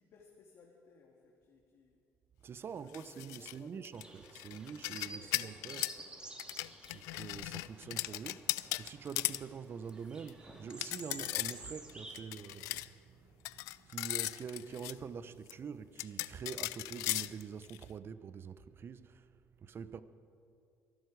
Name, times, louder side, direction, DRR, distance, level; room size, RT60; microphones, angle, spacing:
voice 1, 0.0-2.0 2.7-3.8 5.1-6.3, left 5 dB, 60° left, 1.9 m, -61 dB
voice 2, 2.4-5.8 6.9-20.0, right 6 dB, 45° right, 0.7 m, -46 dB
sound 1, 2.9-3.5 3.8-6.0 6.4-9.4 9.9-10.0 10.3-10.4 10.7-11.6 11.9-12.9 13.4-14.9 15.5-15.6 16.0-17.8, left 20 dB, 85° left, 0.4 m, -38 dB
sound 2, 3.9-12.2, right 2 dB, 15° right, 2.5 m, -52 dB
23.0 x 11.5 x 4.8 m
supercardioid pair, 75°, 6 cm